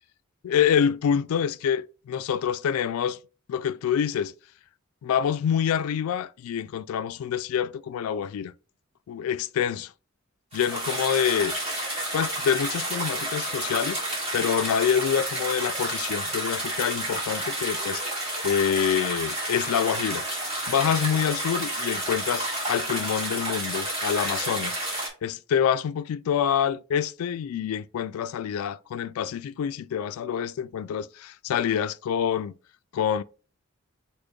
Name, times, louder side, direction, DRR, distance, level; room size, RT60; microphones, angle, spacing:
voice 1, 0.4-3.2 3.5-4.3 5.0-8.5 9.1-9.9 10.5-11.6 12.1-14.0 14.3-18.0 18.4-20.3 20.7-24.8 25.2-32.5 32.9-33.2, left 8 dB, 85° left, 0.3 m, -26 dB
sound 1, 10.5-25.1, right 1 dB, 30° right, 1.9 m, -30 dB
5.0 x 4.3 x 2.3 m
head